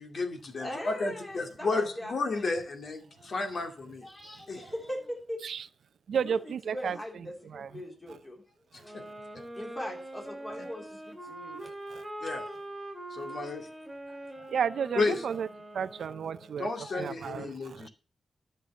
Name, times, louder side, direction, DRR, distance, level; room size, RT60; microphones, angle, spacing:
voice 1, 0.0-4.1 4.5-4.6 8.9-9.0 12.2-12.4 13.1-13.7 14.9-15.2 16.6-17.9, left 3 dB, 50° left, 2.3 m, -32 dB
voice 2, 0.6-2.5 3.2-3.6 4.0-5.4 6.1-8.4 8.7-9.0 9.6-11.7 12.4-12.5 13.4-13.5 14.1-14.6 16.4-17.2, equal, 20° left, 3.6 m, -41 dB
voice 3, 6.1-7.0 7.5-7.7 14.5-15.5 15.7-16.7 17.0-17.9, right 7 dB, 80° right, 0.5 m, -32 dB
sound 1, 8.8-16.6, right 1 dB, 5° right, 2.4 m, -43 dB
12.0 x 6.7 x 5.8 m
wide cardioid pair, 170°, 0 cm